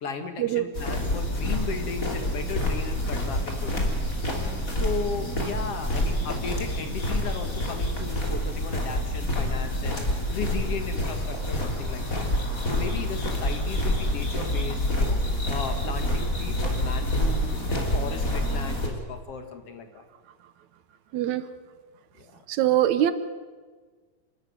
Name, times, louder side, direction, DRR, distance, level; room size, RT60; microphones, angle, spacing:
voice 1, 0.0-3.9 4.7-10.0 10.3-12.3 12.7-15.2 15.5-20.1 22.2-22.4, left 5 dB, 55° left, 6 dB, 2.4 m, -36 dB
sound 1, 0.7-18.9, left 1 dB, 25° left, 3.4 m, -27 dB
voice 2, 21.1-21.4 22.5-23.1, right 13 dB, 75° right, 12 dB, 2.1 m, -22 dB
28.0 x 13.0 x 9.4 m, 1.5 s
omnidirectional pair, 3.4 m